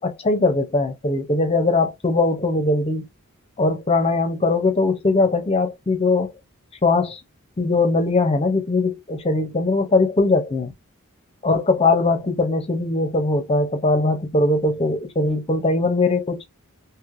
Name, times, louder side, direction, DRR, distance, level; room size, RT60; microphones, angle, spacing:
voice 1, 0.0-3.0 3.6-6.3 6.8-7.2 7.6-10.7 11.4-16.4, left 3 dB, 25° left, 0.5 m, -20 dB
3.2 x 2.8 x 2.4 m
head